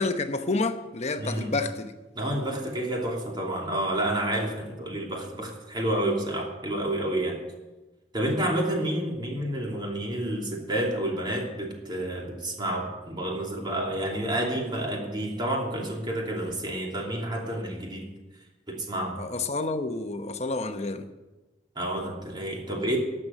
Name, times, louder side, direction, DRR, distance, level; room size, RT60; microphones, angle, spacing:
voice 1, 0.0-1.9 19.2-21.0, left 3 dB, 40° left, 1.0 m, -29 dB
voice 2, 1.2-1.5 2.1-7.4 8.1-18.1 18.7-19.2 21.8-23.0, right 1 dB, 25° right, 2.9 m, -29 dB
12.0 x 7.8 x 9.8 m
head